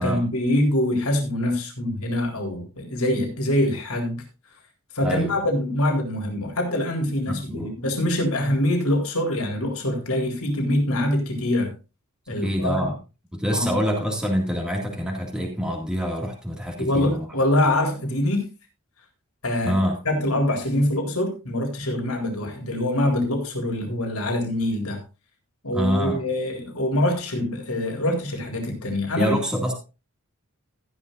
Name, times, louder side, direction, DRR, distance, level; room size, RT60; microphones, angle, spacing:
voice 1, 0.0-4.2 4.9-11.7 12.3-12.8 13.5-13.8 16.8-18.5 19.4-19.7 20.1-25.0 25.6-29.4, left 1 dB, 75° left, 2 dB, 3.9 m, -24 dB
voice 2, 5.0-5.4 7.3-7.7 12.4-13.0 13.3-17.3 17.7-17.8 19.6-20.0 25.7-26.2 29.2-29.7, equal, 5° right, 0 dB, 2.1 m, -26 dB
15.0 x 11.0 x 2.5 m, 0.29 s
head